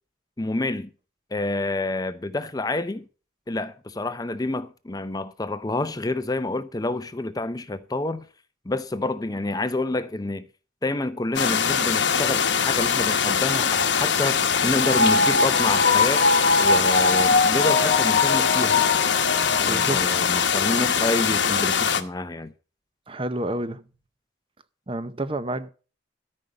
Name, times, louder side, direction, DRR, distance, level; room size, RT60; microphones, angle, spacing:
voice 1, 0.4-0.9 1.3-3.0 3.5-8.2 8.7-10.5 10.8-16.2 16.6-18.8 19.6-22.5, left 2 dB, 20° left, 0.5 m, -28 dB
sound 1, 11.4-22.0, left 7 dB, 60° left, 1.0 m, -22 dB
sound 2, 13.8-20.4 20.8-20.9, left 3 dB, 40° left, 1.1 m, -23 dB
voice 2, 19.7-20.2 23.1-23.8 24.9-25.7, right 1 dB, 25° right, 0.7 m, -29 dB
13.5 x 5.4 x 7.7 m
head